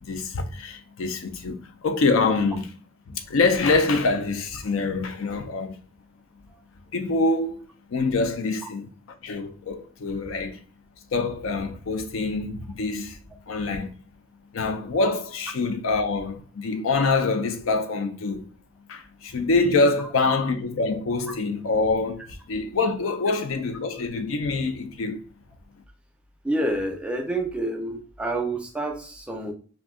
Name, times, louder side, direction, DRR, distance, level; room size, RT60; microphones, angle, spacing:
voice 1, 0.0-2.7 3.1-5.8 6.9-8.9 9.2-10.6 11.1-13.2 13.5-13.9 14.5-18.5 18.9-25.2, left 3 dB, 85° left, 0.5 m, -25 dB
voice 2, 26.4-29.5, right 1 dB, 5° right, 0.4 m, -28 dB
2.6 x 2.3 x 3.5 m
head